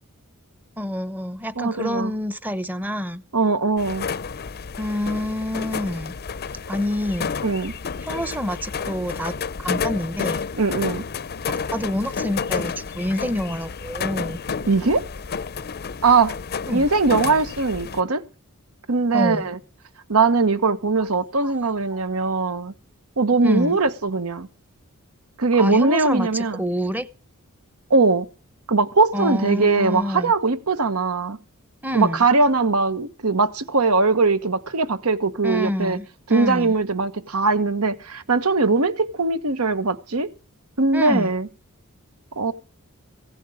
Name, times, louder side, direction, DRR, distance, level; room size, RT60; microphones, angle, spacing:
voice 1, 0.8-3.2 4.8-6.2 6.7-7.3 8.0-10.5 11.5-14.4 16.7-16.9 19.1-19.5 21.4-21.5 21.9-22.0 23.4-23.8 25.5-27.1 29.1-30.3 31.8-32.3 35.4-36.7 40.9-41.3, left 1 dB, 10° right, 0.8 m, -27 dB
voice 2, 1.6-2.1 3.3-4.1 7.4-7.7 10.6-11.0 14.7-15.0 16.0-16.3 16.7-18.2 18.9-19.6 20.1-22.7 23.2-24.5 25.4-26.6 27.9-28.3 28.7-31.4 31.9-36.0 36.3-40.3 40.8-41.5 42.4-42.5, right 3 dB, 75° right, 1.1 m, -20 dB
sound 1, 3.8-18.0, left 5 dB, 45° left, 0.6 m, -30 dB
16.0 x 11.0 x 5.0 m
head